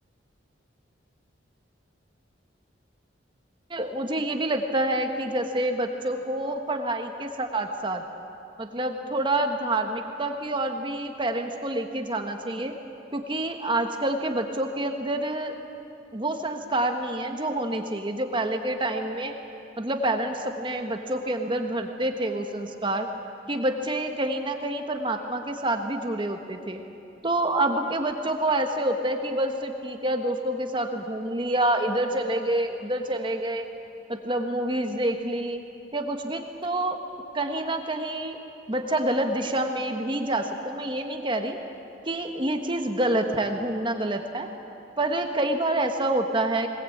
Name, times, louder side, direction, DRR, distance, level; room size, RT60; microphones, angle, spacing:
voice 1, 3.7-8.0 8.6-12.7 13.1-15.6 16.1-19.4 19.8-23.1 23.5-26.8 27.2-33.7 34.1-35.6 35.9-37.0 37.3-38.4 38.7-41.6 42.0-44.5 45.0-46.7, right 1 dB, 25° right, 5 dB, 1.3 m, -27 dB
21.5 x 19.5 x 8.5 m, 2.8 s
head